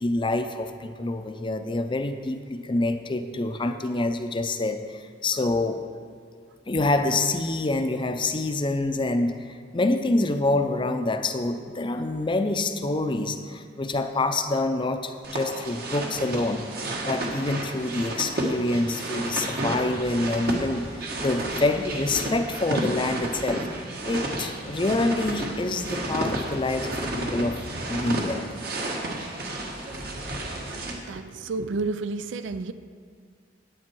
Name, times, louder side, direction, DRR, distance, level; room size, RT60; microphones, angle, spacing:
voice 1, 0.0-5.8 6.7-9.3 9.7-16.7 17.0-23.7 24.0-27.6 27.9-28.5, left 2 dB, 25° left, 8 dB, 0.5 m, -26 dB
sound 1, 15.2-30.9, right 1 dB, 55° right, 1.4 m, -32 dB
voice 2, 31.0-32.7, right 3 dB, 80° right, 12 dB, 0.4 m, -31 dB
10.0 x 9.2 x 4.6 m, 2.2 s
head